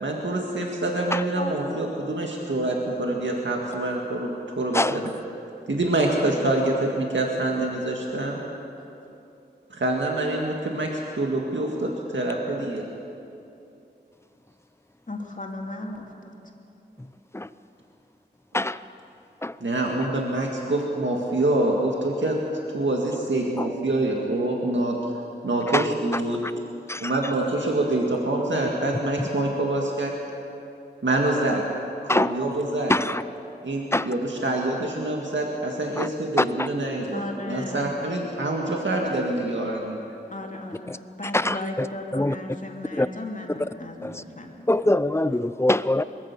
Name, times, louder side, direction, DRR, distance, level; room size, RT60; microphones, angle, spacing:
voice 1, 0.0-5.1 5.7-8.4 9.7-12.8 19.6-22.4 22.7-25.0 25.4-26.4 27.0-30.1 31.0-31.6 32.1-32.9 33.6-40.2, right 2 dB, 90° right, -1 dB, 2.0 m, -26 dB
voice 2, 1.3-1.8 15.1-16.3 37.1-37.9 40.3-44.5, left 1 dB, 45° left, 0 dB, 2.9 m, -36 dB
voice 3, 26.1-26.5 26.9-27.1 29.2-29.3 32.1-32.4 32.9-33.2 33.9-34.1 36.0-36.1 36.4-36.7 40.9-41.0 41.3-41.9 42.1-42.4 42.9-43.1 44.0-44.2 44.7-46.0, left 1 dB, 15° left, 14 dB, 0.6 m, -24 dB
22.0 x 14.0 x 8.4 m, 2.8 s
wide cardioid pair, 45°, 19 cm